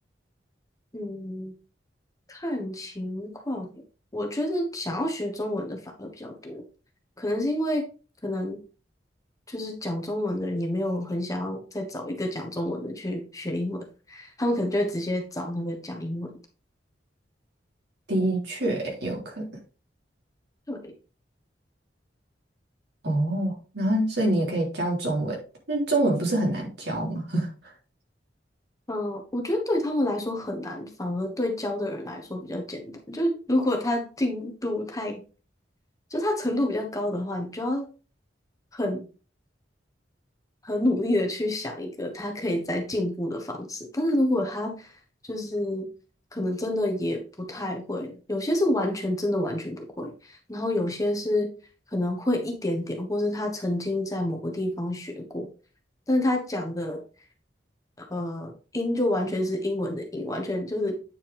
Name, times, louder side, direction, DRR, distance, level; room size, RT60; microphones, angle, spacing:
voice 1, 0.9-1.5 2.3-3.7 4.1-6.6 7.2-7.9 8.2-8.6 9.5-16.3 20.7-20.9 28.9-35.2 36.1-37.9 38.7-39.1 40.6-44.9 45.2-45.9 46.3-51.5 51.9-55.5 56.1-57.0 58.0-61.0, left 1 dB, 20° left, 3 dB, 1.3 m, -28 dB
voice 2, 18.1-19.5 23.0-25.4 25.7-27.5, right 1 dB, 65° right, -2 dB, 3.5 m, -26 dB
8.9 x 5.4 x 3.5 m, 0.34 s
head